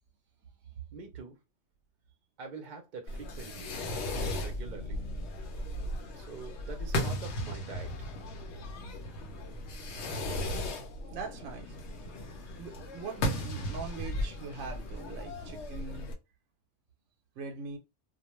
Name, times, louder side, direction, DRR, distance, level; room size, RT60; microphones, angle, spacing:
voice 1, 0.9-1.4 2.4-3.8 4.1-5.0 6.1-8.1, right 4 dB, 50° right, 0.6 m, -45 dB
Fireworks, 3.1-16.1, left 1 dB, 70° left, 0.9 m, -36 dB
voice 2, 11.1-11.8 12.5-16.1 17.4-17.8, right 4 dB, 85° right, 0.9 m, -42 dB
2.3 x 2.2 x 2.9 m
omnidirectional pair, 1.2 m